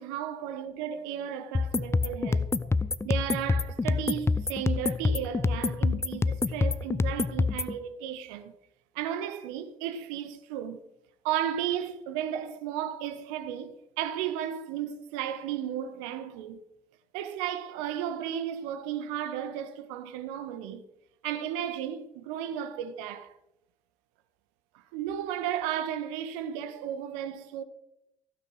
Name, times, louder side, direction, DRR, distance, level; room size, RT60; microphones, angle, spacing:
voice 1, 0.0-2.5 3.0-8.5 8.9-10.8 11.2-16.6 17.1-20.8 21.2-23.3 24.7-27.6, right 10 dB, 65° right, 1.5 m, -34 dB
sound 1, 1.5-7.7, left 3 dB, 15° left, 0.7 m, -27 dB
15.5 x 9.3 x 6.4 m
figure-of-eight pair, 50°, 17 cm